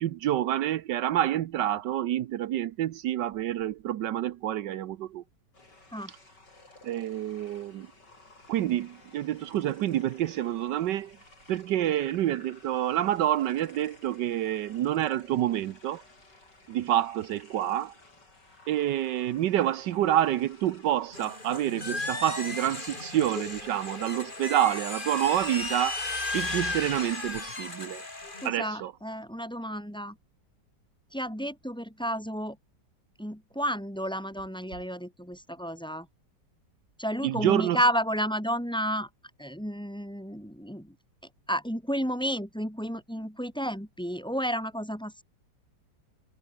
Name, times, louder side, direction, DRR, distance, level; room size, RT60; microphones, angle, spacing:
voice 1, 0.0-5.2 6.8-7.9 8.5-11.2 11.5-16.0 16.7-17.9 18.7-26.0 26.3-28.0 28.4-28.9 37.2-37.8, right 12 dB, 80° right, 1.4 m, -28 dB
sound 1, 5.5-22.9, left 2 dB, 75° left, 7.0 m, -56 dB
sound 2, 21.1-28.5, left 2 dB, 30° left, 3.1 m, -35 dB
voice 2, 28.4-30.2 31.1-32.6 33.2-36.1 37.0-39.1 39.4-40.9 41.5-45.2, equal, ahead, 5.0 m, -31 dB
omnidirectional pair, 1.9 m